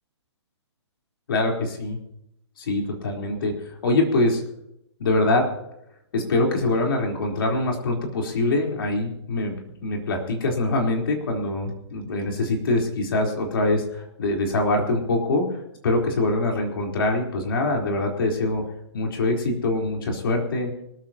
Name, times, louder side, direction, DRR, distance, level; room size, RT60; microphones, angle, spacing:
voice 1, 1.3-2.0 2.6-3.5 3.8-4.4 5.0-5.5 6.1-9.5 9.8-15.5 15.8-18.6 18.9-20.8, left 2 dB, 50° left, 0 dB, 3.9 m, -24 dB
25.0 x 13.0 x 3.0 m, 0.82 s
hypercardioid pair, 175°, 15 cm